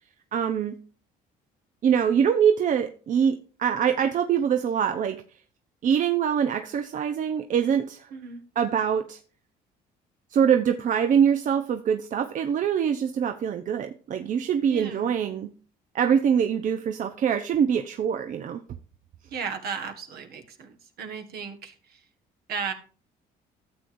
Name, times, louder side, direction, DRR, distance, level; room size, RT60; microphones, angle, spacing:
voice 1, 0.3-0.8 1.8-5.2 5.8-8.1 8.6-9.2 10.3-15.5 15.9-18.6, right 8 dB, 50° right, 8 dB, 0.7 m, -24 dB
voice 2, 8.1-8.4 14.7-15.1 19.3-22.0 22.5-22.7, right 6 dB, 70° right, 6 dB, 1.6 m, -35 dB
13.0 x 7.8 x 2.6 m, 0.38 s
cardioid pair, 110°, 17 cm